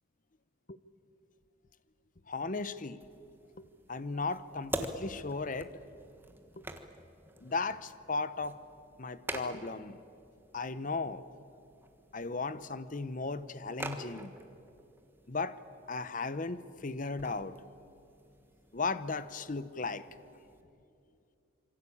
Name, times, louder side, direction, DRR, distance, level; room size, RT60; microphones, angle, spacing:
voice 1, 2.3-3.0 3.6-5.7 6.6-6.7 7.4-8.6 9.0-10.0 10.5-11.2 12.1-14.3 15.3-15.6 15.9-17.5 18.7-20.0, left 3 dB, 40° left, 14 dB, 0.8 m, -36 dB
sound 1, 3.0-20.6, right 1 dB, 10° right, 1.4 m, -47 dB
26.5 x 24.0 x 8.6 m, 2.6 s
head